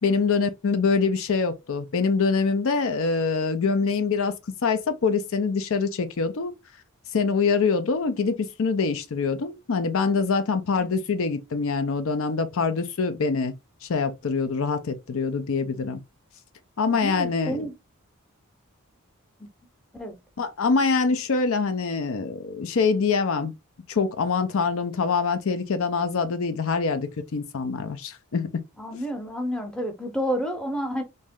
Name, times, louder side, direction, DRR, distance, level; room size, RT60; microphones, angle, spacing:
voice 1, 0.0-4.4 4.6-6.5 7.1-16.0 16.8-17.7 20.4-23.5 23.9-28.6, left 4 dB, 65° left, 0.5 m, -24 dB
voice 2, 16.9-17.7 20.0-20.2 28.8-31.0, equal, 5° left, 0.8 m, -30 dB
3.1 x 2.7 x 3.6 m
head